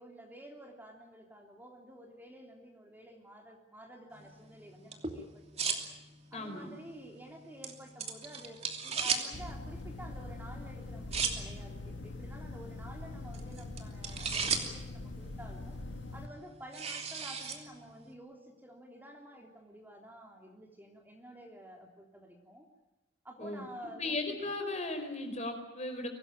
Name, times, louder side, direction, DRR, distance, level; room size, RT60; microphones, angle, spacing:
voice 1, 0.0-5.8 6.3-15.8 16.1-22.7 23.2-24.2, right 1 dB, 10° right, 1 dB, 3.3 m, -51 dB
sound 1, 4.1-18.1, right 5 dB, 35° right, 3.0 m, -40 dB
voice 2, 6.3-6.8 23.4-23.7 24.0-26.1, left 2 dB, 35° left, 5 dB, 4.8 m, -36 dB
sound 2, 9.3-16.3, left 2 dB, 80° left, 1.7 m, -43 dB
24.0 x 18.5 x 8.9 m, 1.0 s
head